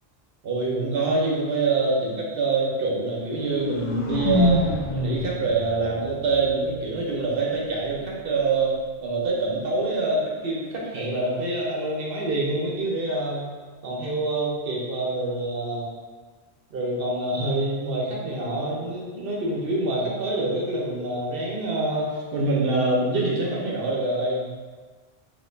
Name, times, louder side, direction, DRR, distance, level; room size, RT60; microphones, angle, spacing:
voice 1, 0.4-13.4 13.8-15.9 16.7-24.5, right 2 dB, 65° right, -3 dB, 0.9 m, -26 dB
sound 1, 3.2-7.2, left 1 dB, 60° left, 0.8 m, -27 dB
3.9 x 3.0 x 2.6 m, 1.4 s
omnidirectional pair, 1.1 m